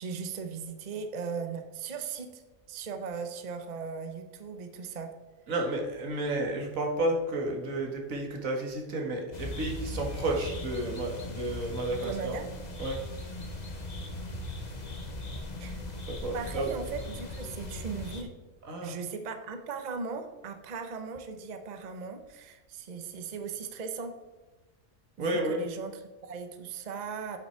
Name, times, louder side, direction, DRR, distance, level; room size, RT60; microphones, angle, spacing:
voice 1, 0.0-2.4 2.7-5.1 11.9-12.5 15.6-15.8 16.3-18.3 18.8-24.1 25.2-27.4, right 5 dB, 40° right, 7 dB, 0.8 m, -38 dB
voice 2, 5.5-12.3 12.8-13.0 16.1-16.7 18.7-19.0 25.2-25.6, right 2 dB, 80° right, 2 dB, 1.8 m, -31 dB
sound 1, 9.3-18.2, left 2 dB, 35° left, 1.0 m, -39 dB
8.5 x 5.7 x 4.4 m, 1.2 s
omnidirectional pair, 1.4 m